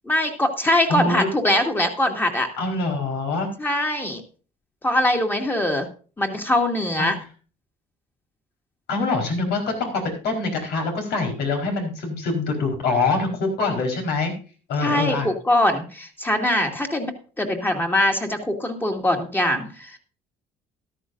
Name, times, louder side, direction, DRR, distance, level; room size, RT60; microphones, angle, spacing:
voice 1, 0.1-2.5 3.6-4.2 4.8-5.9 6.2-7.2 14.8-20.0, left 1 dB, 10° left, 3 dB, 2.2 m, -22 dB
voice 2, 0.9-1.3 2.6-3.5 7.0-7.1 8.9-14.3 14.7-15.3, left 3 dB, 75° left, 3 dB, 4.3 m, -24 dB
13.5 x 12.5 x 2.6 m, 0.37 s
cardioid pair, 110°, 17 cm